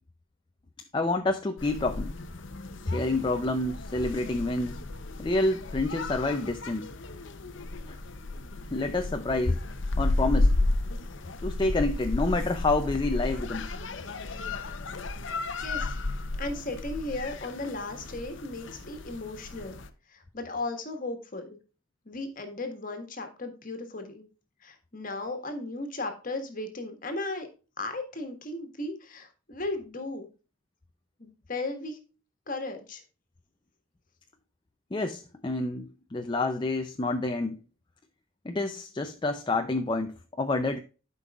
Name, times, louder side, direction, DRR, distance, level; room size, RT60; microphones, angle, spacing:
voice 1, 0.9-2.1 2.8-4.8 5.2-6.9 7.9-8.0 8.7-9.6 10.0-10.5 11.4-13.7 34.9-37.6 38.4-40.8, left 2 dB, 20° left, 0.4 m, -28 dB
sound 1, 1.6-19.9, left 2 dB, 60° left, 0.7 m, -33 dB
voice 2, 15.6-15.9 16.4-19.8 20.1-21.6 22.0-24.2 24.6-27.5 27.8-30.3 31.2-32.0 32.5-33.0, left 2 dB, 40° left, 1.5 m, -36 dB
12.0 x 5.4 x 2.3 m
head